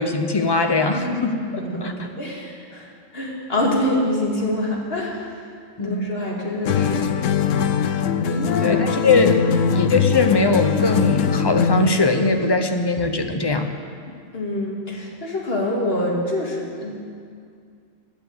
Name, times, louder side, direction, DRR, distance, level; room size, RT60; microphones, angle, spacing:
voice 1, 0.0-1.3 1.8-1.9 5.8-6.1 8.6-9.4 9.7-13.7, left 3 dB, 25° left, 6 dB, 0.6 m, -20 dB
voice 2, 0.9-5.5 5.8-7.1 8.2-8.8 14.3-17.0, left 1 dB, 50° left, -2 dB, 2.3 m, -26 dB
sound 1, 6.7-12.0, left 7 dB, 75° left, 1.0 m, -21 dB
10.0 x 9.2 x 8.0 m, 2.3 s
omnidirectional pair, 1.3 m